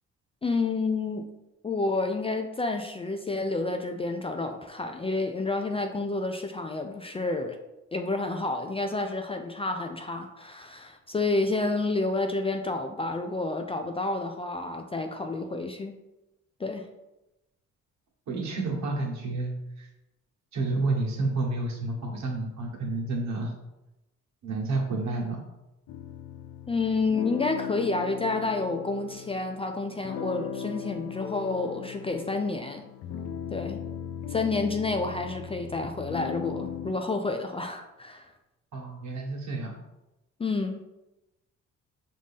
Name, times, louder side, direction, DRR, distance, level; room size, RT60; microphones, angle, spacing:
voice 1, 0.4-1.3 1.6-7.6 7.9-16.0 16.6-16.9 26.7-32.8 33.5-33.8 34.3-38.3 40.4-40.8, left 3 dB, 20° left, 5 dB, 0.3 m, -29 dB
voice 2, 18.3-19.9 20.5-23.5 24.4-25.4 38.7-39.8, right 2 dB, 65° right, -1 dB, 1.2 m, -30 dB
sound 1, 25.9-36.9, left 8 dB, 80° left, 0.5 m, -38 dB
5.0 x 2.6 x 3.5 m, 0.96 s
cardioid pair, 90°, 30 cm